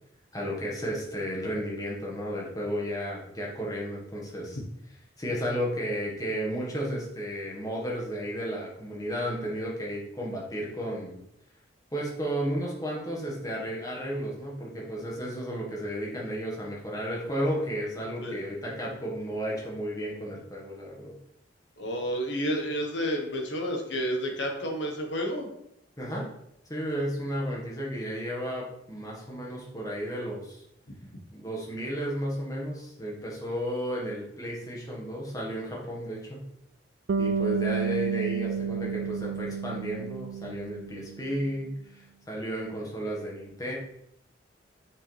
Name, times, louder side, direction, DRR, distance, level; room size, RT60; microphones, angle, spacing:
voice 1, 0.3-4.6 5.2-11.2 11.9-21.1 26.0-26.3 26.7-30.6 31.3-36.4 37.2-43.7, equal, 20° left, -3 dB, 1.7 m, -33 dB
voice 2, 21.8-25.5, equal, 70° left, 1 dB, 1.4 m, -30 dB
Bass guitar, 37.1-41.4, right 6 dB, 80° right, 0.4 m, -30 dB
6.6 x 5.9 x 3.4 m, 0.78 s
head